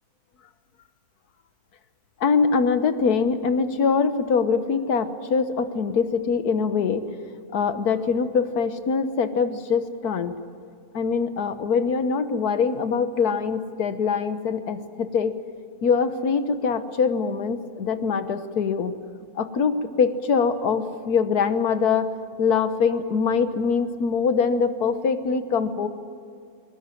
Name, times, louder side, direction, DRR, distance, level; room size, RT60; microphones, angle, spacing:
voice 1, 2.2-7.1 7.5-10.3 10.9-15.3 15.8-18.9 19.3-22.1 22.4-25.9, left 5 dB, 75° left, 10 dB, 1.7 m, -23 dB
21.5 x 19.5 x 9.9 m, 2.3 s
omnidirectional pair, 1.7 m